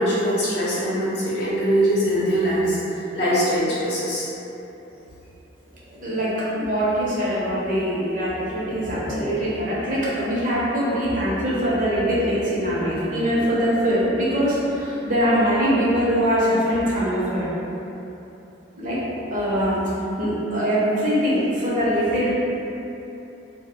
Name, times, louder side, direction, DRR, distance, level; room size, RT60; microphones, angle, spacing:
voice 1, 0.0-4.3, equal, 55° left, -9 dB, 0.7 m, -22 dB
voice 2, 5.9-17.5 18.8-19.0 19.3-19.8 20.2-22.3, equal, 45° right, -8 dB, 0.6 m, -22 dB
2.0 x 2.0 x 3.5 m, 3.0 s
head